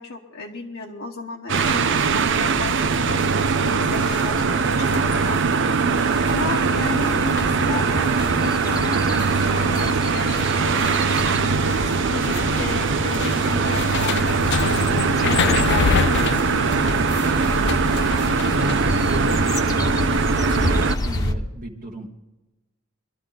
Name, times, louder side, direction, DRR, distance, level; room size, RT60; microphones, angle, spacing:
voice 1, 0.0-3.3 3.6-5.4 6.3-14.8 15.2-16.9, left 3 dB, 80° left, -1 dB, 1.2 m, -34 dB
sound 1, 1.5-21.3, left 6 dB, 55° left, 0.4 m, -30 dB
sound 2, 1.5-21.0, right 5 dB, 60° right, 0.6 m, -21 dB
sound 3, 6.0-21.3, left 1 dB, 20° left, 1.0 m, -30 dB
voice 2, 18.5-19.9 21.0-22.1, right 1 dB, 45° right, -1 dB, 1.3 m, -32 dB
20.5 x 12.5 x 4.0 m, 1.0 s
head